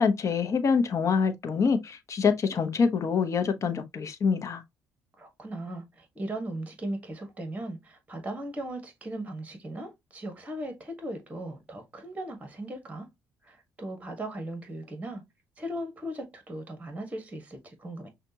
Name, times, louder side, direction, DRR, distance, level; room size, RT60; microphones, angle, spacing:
voice 1, 0.0-4.6, left 5 dB, 45° left, 1.0 m, -25 dB
voice 2, 5.2-13.1 13.4-15.2 15.6-18.1, right 1 dB, 20° right, 1.6 m, -38 dB
6.0 x 2.5 x 2.8 m
cardioid pair, 85°, 7 cm